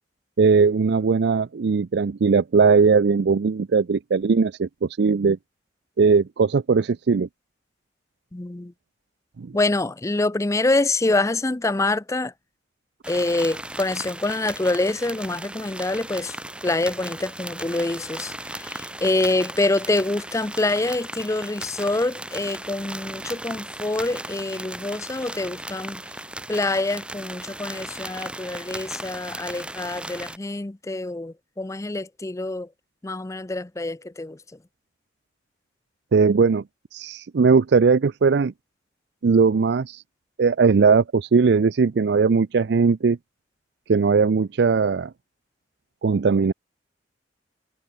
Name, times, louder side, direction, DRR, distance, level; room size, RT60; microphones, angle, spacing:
voice 1, 0.4-5.4 6.0-7.3 9.4-9.6 36.1-36.6 36.9-38.5 39.2-40.0 40.4-43.2 43.9-45.1 46.0-46.5, right 5 dB, 65° right, 0.4 m, -19 dB
voice 2, 8.3-8.7 9.5-12.3 13.1-16.4 16.6-26.0 26.5-32.7 33.0-34.4, left 2 dB, 15° left, 0.5 m, -26 dB
sound 1, 13.0-30.4, right 1 dB, 5° right, 1.4 m, -37 dB
head